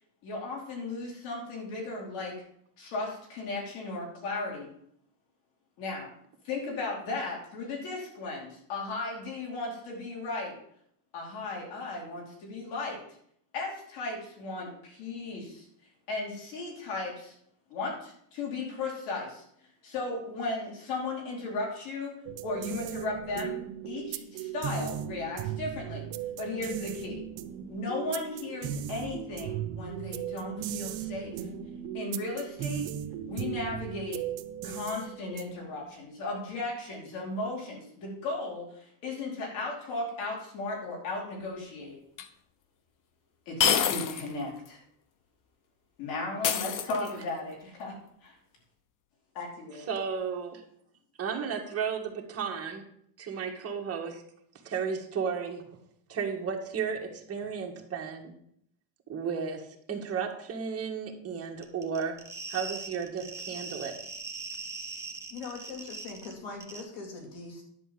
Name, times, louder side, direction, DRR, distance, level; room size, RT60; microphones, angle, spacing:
voice 1, 0.2-2.3 2.8-4.7 5.8-6.1 6.4-10.5 11.1-13.0 13.5-15.6 16.1-17.3 17.7-19.4 19.8-22.1 22.4-23.6 23.8-26.1 26.4-27.2 27.7-31.5 31.9-32.8 33.3-34.2 34.6-42.0 43.5-44.8 46.0-47.9 48.2-48.3 49.3-49.9, left 3 dB, 80° left, -3 dB, 4.6 m, -36 dB
sound 1, 22.3-35.7, right 10 dB, 55° right, 1.0 m, -37 dB
sound 2, 42.2-42.3 43.6-44.3 44.7-44.8 46.4-47.3, left 8 dB, 40° left, 0.8 m, -27 dB
voice 2, 49.9-50.6 51.2-52.9 53.2-54.2 54.6-55.6 56.1-58.3 59.1-62.2 62.5-63.9, right 6 dB, 30° right, 1 dB, 1.8 m, -34 dB
sound 3, 61.6-66.3 66.6-66.8, right 4 dB, 5° right, 1.1 m, -40 dB
voice 3, 65.3-67.6, left 4 dB, 65° left, 1 dB, 3.8 m, -41 dB
11.0 x 4.8 x 7.7 m, 0.68 s
cardioid pair, 155°, 48 cm